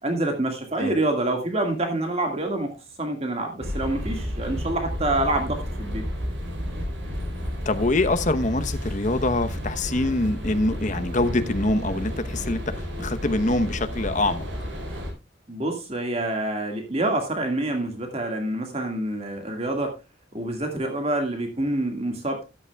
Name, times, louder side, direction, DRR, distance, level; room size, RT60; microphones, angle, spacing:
voice 1, 0.0-6.1 15.5-20.0 20.3-22.4, right 1 dB, 35° right, 1.8 m, -27 dB
sound 1, 3.6-15.1, equal, 80° right, 4.0 m, -31 dB
voice 2, 7.6-14.4, left 2 dB, 40° left, 0.9 m, -24 dB
13.5 x 11.0 x 2.3 m
head